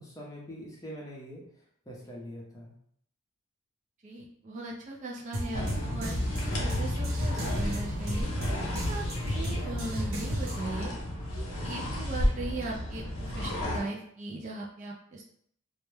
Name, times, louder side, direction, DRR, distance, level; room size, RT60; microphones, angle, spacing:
voice 1, 0.0-1.4 1.9-2.7, equal, 15° left, -3 dB, 0.6 m, -43 dB
voice 2, 4.0-6.1 6.5-8.3 8.9-10.9 11.3-15.2, right 2 dB, 35° right, -1 dB, 0.3 m, -38 dB
sound 1, 5.3-10.8, equal, 75° right, 0.7 m, -35 dB
sound 2, 5.5-13.8, left 1 dB, 85° left, 0.7 m, -32 dB
2.2 x 2.1 x 3.0 m, 0.66 s
head